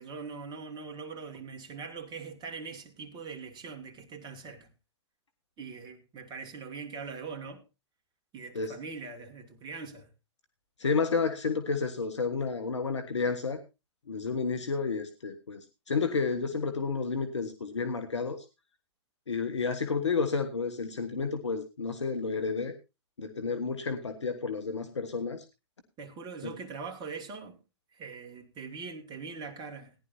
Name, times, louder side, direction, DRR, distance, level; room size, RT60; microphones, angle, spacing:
voice 1, 0.0-4.7 5.6-7.6 8.3-10.1 26.0-27.6 27.9-30.0, right 5 dB, 30° right, 2.3 m, -42 dB
voice 2, 10.8-13.6 14.1-18.4 19.3-22.7 23.2-25.4 26.4-26.5, left 4 dB, 85° left, 1.3 m, -31 dB
18.0 x 11.0 x 2.7 m
hypercardioid pair, 110°, 15 cm